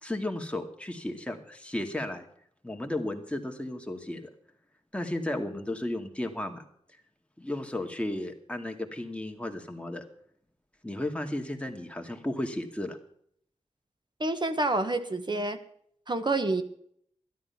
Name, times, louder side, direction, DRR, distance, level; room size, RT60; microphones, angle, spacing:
voice 1, 0.0-2.3 2.6-4.3 4.9-6.6 7.4-10.1 10.8-13.0, left 1 dB, 10° left, 3 dB, 2.3 m, -34 dB
voice 2, 14.2-15.6 16.1-16.6, right 2 dB, 40° right, 9 dB, 1.5 m, -28 dB
13.0 x 11.5 x 5.8 m, 0.65 s
wide cardioid pair, 60°, 12 cm